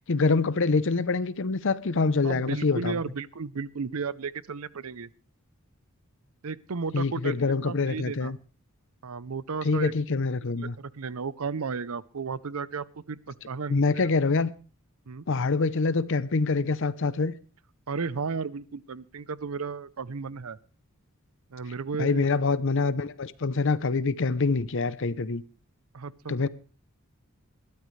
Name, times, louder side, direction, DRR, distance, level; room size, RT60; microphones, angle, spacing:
voice 1, 0.1-3.0 6.9-8.4 9.6-10.7 13.7-14.5 15.3-17.3 22.0-25.4 26.3-26.5, left 4 dB, 60° left, 0.7 m, -25 dB
voice 2, 2.2-5.1 6.4-7.3 7.6-8.3 9.0-9.9 10.5-14.1 15.1-15.2 17.9-20.6 21.5-22.3 25.9-26.5, right 5 dB, 85° right, 0.6 m, -34 dB
20.5 x 13.0 x 3.3 m
head